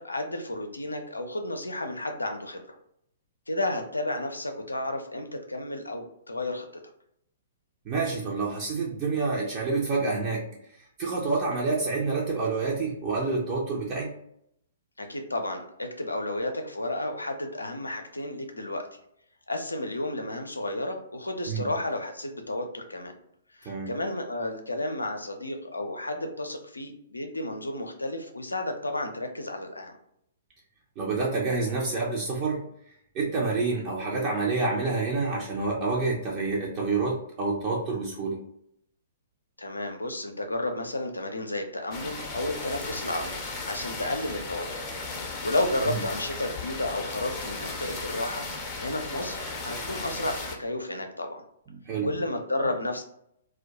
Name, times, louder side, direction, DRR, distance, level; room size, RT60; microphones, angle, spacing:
voice 1, 0.0-2.8 3.5-6.7 15.0-18.9 19.5-23.1 23.6-29.9 39.6-43.4 43.7-44.7 45.4-48.4 48.8-51.4 52.0-53.0, left 1 dB, 80° left, 4 dB, 0.4 m, -32 dB
voice 2, 7.9-10.5 11.0-14.1 21.5-21.7 23.7-23.9 31.0-32.6 33.1-38.4 45.9-46.0 51.7-52.2, right 3 dB, 30° right, -3 dB, 0.5 m, -28 dB
sound 1, 41.9-50.6, left 3 dB, 25° left, 0.5 m, -36 dB
2.1 x 2.1 x 2.7 m, 0.73 s
figure-of-eight pair, 115°, 0 cm